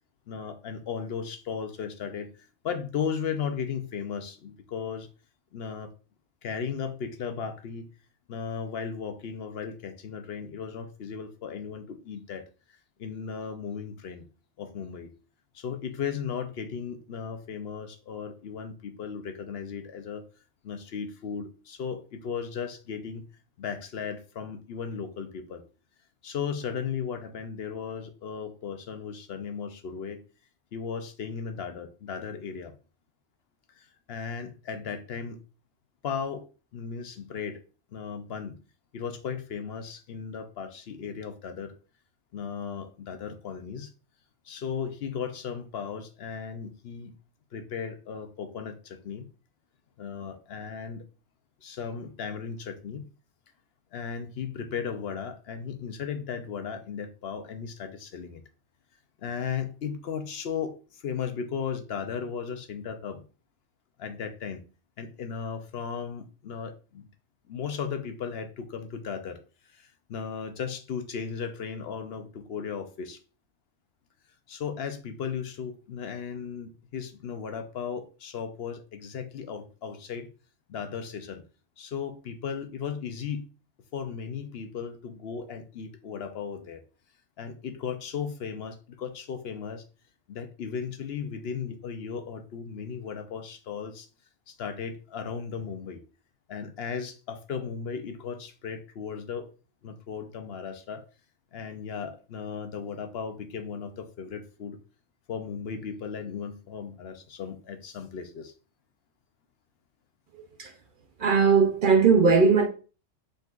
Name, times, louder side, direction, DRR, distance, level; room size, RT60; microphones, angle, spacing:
voice 1, 0.3-5.1 5.5-5.9 6.4-7.9 8.3-12.4 13.0-14.2 14.6-15.1 15.5-20.2 20.6-23.2 23.6-25.6 26.2-30.2 30.7-32.7 33.7-35.4 36.0-36.4 36.7-37.6 37.9-38.6 38.9-41.7 42.3-43.9 44.4-47.1 47.5-49.2 50.0-51.0 51.6-53.1 53.9-58.4 59.2-63.2 64.0-64.6 65.0-67.1 67.5-69.4 69.6-73.2 74.5-80.3 80.7-81.4 81.8-83.5 83.9-86.8 87.4-89.8 90.3-94.1 94.5-96.0 96.5-99.5 99.8-101.0 101.5-104.8 105.3-108.5, left 6 dB, 65° left, 0.8 m, -36 dB
voice 2, 111.2-112.7, right 5 dB, 55° right, 0.7 m, -19 dB
5.2 x 3.7 x 2.4 m
omnidirectional pair, 1.2 m